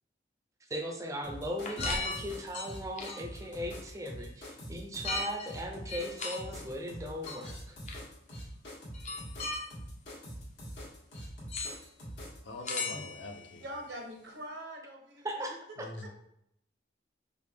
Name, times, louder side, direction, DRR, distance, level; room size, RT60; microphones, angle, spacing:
voice 1, 0.6-7.8 12.9-13.0 15.2-15.9, equal, 15° right, 4 dB, 0.4 m, -38 dB
sound 1, 1.2-12.4, equal, 75° left, 1.5 m, -44 dB
sound 2, 1.6-3.4 5.0-5.5 5.9-6.4 7.3-7.4 7.9-8.0 8.9-9.6 11.5-11.8 12.6-13.4, left 3 dB, 40° left, 0.6 m, -36 dB
voice 2, 12.4-13.7 15.8-16.1, left 2 dB, 90° left, 4 dB, 0.6 m, -43 dB
voice 3, 13.6-15.5 16.0-16.1, right 1 dB, 80° right, 2 dB, 0.8 m, -43 dB
5.0 x 2.5 x 3.3 m, 0.77 s
head